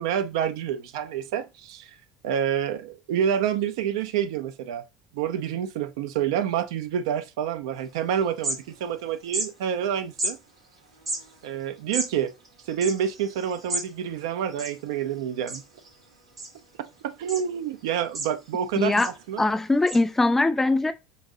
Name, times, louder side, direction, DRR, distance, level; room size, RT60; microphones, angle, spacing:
voice 1, 0.0-1.9 2.2-4.8 5.1-10.4 11.4-12.3 12.7-15.6 17.0-18.9 19.3-19.4, right 9 dB, 65° right, 0.4 m, -28 dB
sound 1, 7.8-7.9 8.2-9.0 9.3-9.5 10.2-10.3 10.9-13.9 14.2-14.3 14.5-15.1 15.5-15.9 16.4-16.9 17.3-17.4 17.9-18.6 19.0-19.2 19.9-20.0, right 1 dB, 85° right, 0.9 m, -32 dB
voice 2, 18.8-19.1 19.4-20.9, left 2 dB, 10° left, 0.4 m, -21 dB
5.3 x 2.6 x 2.6 m
figure-of-eight pair, 70°, 3 cm